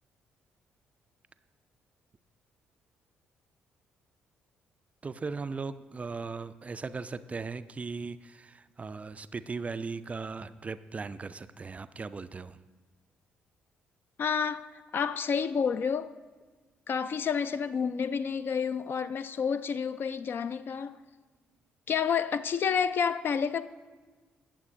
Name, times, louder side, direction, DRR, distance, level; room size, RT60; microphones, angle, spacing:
voice 1, 5.0-12.6, right 4 dB, 25° right, 0.3 m, -38 dB
voice 2, 14.2-16.1 16.9-21.0 21.9-23.6, left 6 dB, 45° left, 0.4 m, -29 dB
17.5 x 7.1 x 2.5 m
figure-of-eight pair, 45°, 5 cm